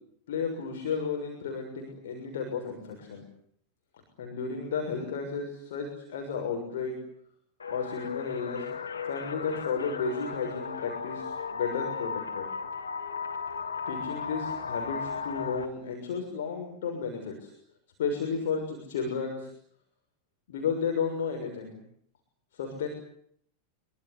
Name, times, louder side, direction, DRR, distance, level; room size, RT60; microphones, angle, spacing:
voice 1, 0.3-3.2 4.2-6.9 7.7-8.7 9.1-12.5 13.9-17.5 18.0-19.5 20.5-21.8 22.5-22.9, left 5 dB, 60° left, 2 dB, 6.7 m, -33 dB
sound 1, 7.6-15.6, left 6 dB, 75° left, 3.0 m, -35 dB
26.0 x 24.5 x 8.4 m, 0.67 s
figure-of-eight pair, 90°, 0 cm